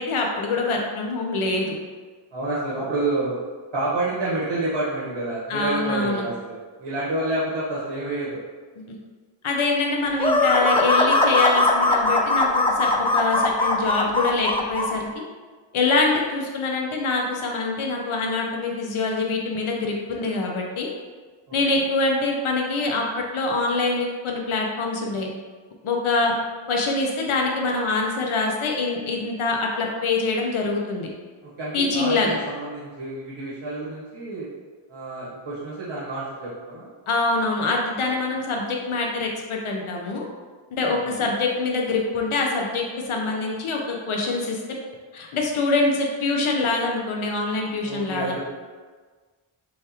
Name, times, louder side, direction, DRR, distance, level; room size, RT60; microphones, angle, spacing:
voice 1, 0.0-1.7 5.5-6.3 9.4-15.1 15.7-20.9 21.5-25.3 25.8-26.3 26.7-31.1 31.7-32.4 37.1-40.2 40.7-44.6 45.1-48.3, left 3 dB, 75° left, 0 dB, 0.8 m, -24 dB
voice 2, 2.3-3.4 3.7-8.4 31.6-34.5 34.9-36.9 40.9-41.3 47.8-48.4, right 2 dB, 70° right, -8 dB, 1.3 m, -29 dB
sound 1, 10.2-14.9, left 2 dB, 10° left, 0.4 m, -20 dB
6.3 x 2.4 x 2.9 m, 1.4 s
wide cardioid pair, 60°, 50 cm